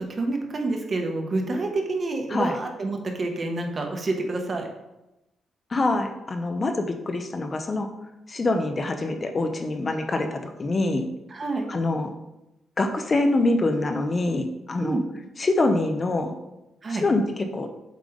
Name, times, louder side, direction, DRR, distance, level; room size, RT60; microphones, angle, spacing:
voice 1, 0.0-4.7 11.3-11.7 14.8-15.0 16.8-17.0, right 2 dB, 35° right, 3 dB, 1.2 m, -28 dB
voice 2, 5.7-7.9 8.3-11.1 11.7-12.1 12.8-15.0 15.4-16.3 16.9-17.7, left 2 dB, 30° left, 6 dB, 0.7 m, -25 dB
7.6 x 3.5 x 5.0 m, 0.94 s
cardioid pair, 110°, 0 cm